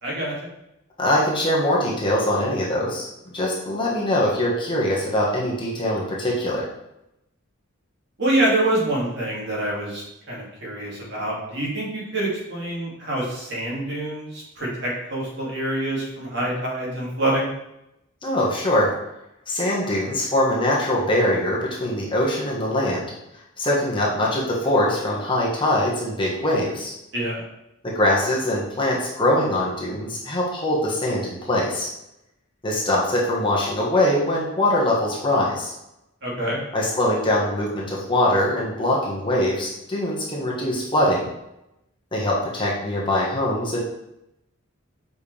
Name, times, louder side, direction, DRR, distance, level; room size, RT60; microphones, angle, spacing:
voice 1, 0.0-0.3 8.2-17.5 27.1-27.4 36.2-36.6, right 1 dB, 55° right, -5 dB, 2.5 m, -26 dB
voice 2, 1.0-3.0 3.3-6.6 18.2-18.9 19.5-23.1 23.6-26.9 27.8-31.9 32.6-35.7 36.7-41.3 42.1-43.8, left 1 dB, 25° left, -4 dB, 1.4 m, -22 dB
7.9 x 5.5 x 3.4 m, 0.86 s
head